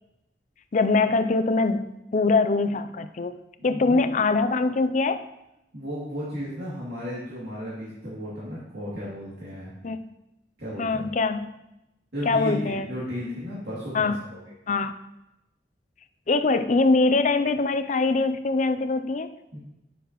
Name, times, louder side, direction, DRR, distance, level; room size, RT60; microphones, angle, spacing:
voice 1, 0.7-5.3 9.8-10.1 10.8-11.5 12.3-12.9 13.9-14.2 14.7-14.9 16.3-19.4, left 3 dB, 45° left, 10 dB, 0.5 m, -23 dB
voice 2, 3.6-4.1 5.7-9.7 10.6-11.0 12.1-14.4 19.5-19.6, equal, 70° right, -9 dB, 2.7 m, -34 dB
9.8 x 6.9 x 3.1 m, 0.89 s
head